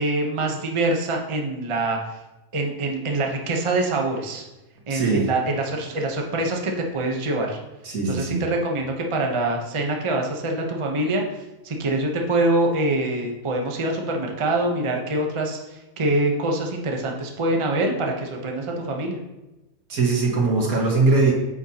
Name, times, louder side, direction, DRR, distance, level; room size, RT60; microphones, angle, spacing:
voice 1, 0.0-2.0 2.5-4.4 4.9-7.6 8.0-11.2 11.6-19.2, right 2 dB, 25° right, 1 dB, 0.7 m, -24 dB
voice 2, 4.9-5.3 7.8-8.4 19.9-21.3, right 3 dB, 80° right, -1 dB, 2.1 m, -20 dB
8.7 x 6.3 x 2.9 m, 1.0 s
omnidirectional pair, 1.5 m